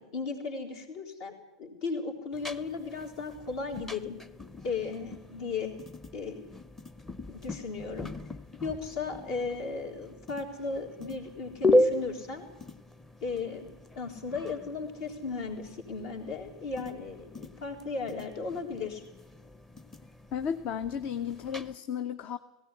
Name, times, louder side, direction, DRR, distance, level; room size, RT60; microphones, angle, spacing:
voice 1, 0.0-1.3 1.6-4.2 4.6-5.7 6.1-6.4 7.3-8.1 8.6-12.5 13.2-13.7 13.9-19.0, left 4 dB, 60° left, 1 dB, 4.0 m, -36 dB
sound 1, 2.3-21.7, left 1 dB, 10° left, 0.9 m, -35 dB
voice 2, 20.3-22.4, left 8 dB, 45° left, 11 dB, 0.8 m, -33 dB
18.5 x 16.5 x 9.8 m, 0.97 s
figure-of-eight pair, 90°, 3 cm